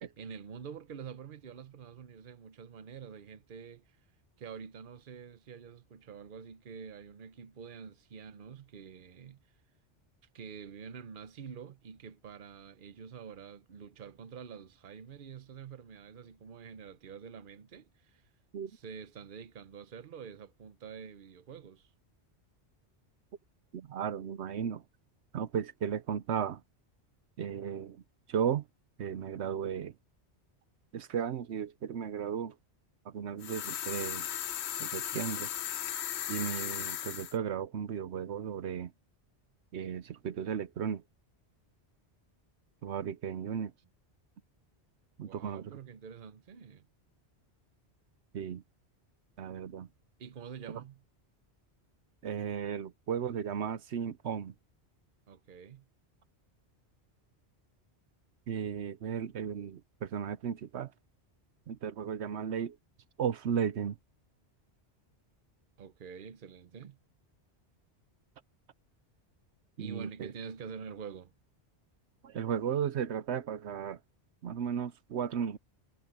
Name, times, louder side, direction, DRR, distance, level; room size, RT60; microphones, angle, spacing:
voice 1, 0.2-4.0 4.4-9.4 10.3-18.3 18.7-21.9 45.2-46.9 50.2-51.0 55.3-55.9 65.8-67.0 69.8-71.3, right 6 dB, 50° right, 1.0 m, -47 dB
voice 2, 23.7-24.8 25.3-26.6 27.4-28.0 28.3-28.6 29.0-29.9 30.9-32.5 33.0-34.3 34.8-35.5 36.3-38.9 39.7-41.0 42.8-43.7 45.2-45.8 48.3-48.6 49.4-49.9 52.2-54.5 58.5-60.9 61.7-62.8 63.2-64.0 69.8-70.3 72.2-74.0 74.4-75.6, right 8 dB, 75° right, 1.0 m, -35 dB
sound 1, 33.4-37.4, left 10 dB, 75° left, 0.9 m, -36 dB
omnidirectional pair, 1.2 m